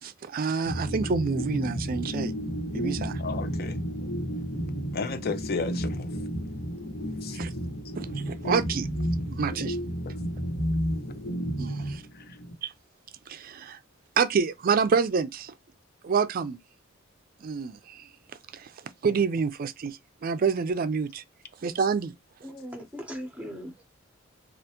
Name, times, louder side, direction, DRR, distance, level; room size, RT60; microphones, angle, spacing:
voice 1, 0.0-2.3 2.7-3.2 7.3-7.5 7.9-8.9 9.3-9.8 11.6-12.0 12.6-12.7 13.3-13.8 14.2-15.5 16.0-16.6 17.4-18.1 18.5-18.7 19.0-21.2 21.6-22.1, right 5 dB, 45° right, 0.4 m, -28 dB
sound 1, 0.6-12.5, equal, 85° left, 1.3 m, -32 dB
voice 2, 3.2-3.8 4.9-6.1 7.2-7.4 10.1-10.2 12.1-12.4, left 4 dB, 50° left, 0.5 m, -33 dB
voice 3, 22.4-23.9, equal, 5° right, 0.8 m, -39 dB
3.4 x 2.4 x 2.8 m
head